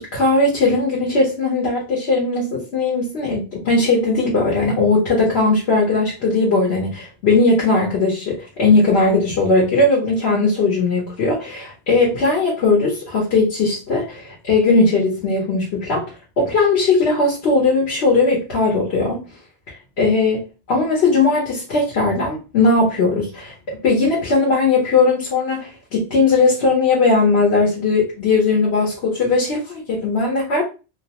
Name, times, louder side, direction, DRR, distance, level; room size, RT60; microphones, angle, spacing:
voice 1, 0.0-16.0 16.4-19.2 20.0-30.6, left 3 dB, 85° left, -3 dB, 1.1 m, -18 dB
2.8 x 2.0 x 2.8 m, 0.32 s
omnidirectional pair, 1.1 m